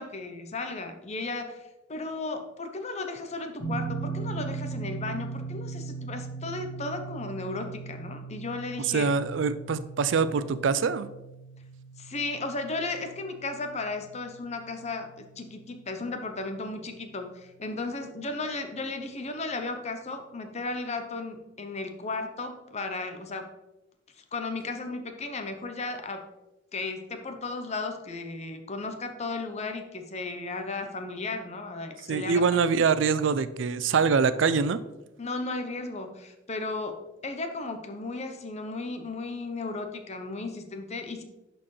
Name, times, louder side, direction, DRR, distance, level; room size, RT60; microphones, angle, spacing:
voice 1, 0.0-9.1 12.0-23.5 24.2-26.2 26.7-32.4 35.2-41.2, left 3 dB, 35° left, 6 dB, 0.8 m, -35 dB
sound 1, 3.6-16.5, right 4 dB, 50° left, 2.1 m, -39 dB
voice 2, 8.9-11.1 32.1-34.8, right 5 dB, 65° right, 14 dB, 0.4 m, -24 dB
11.0 x 4.4 x 3.2 m, 0.95 s
head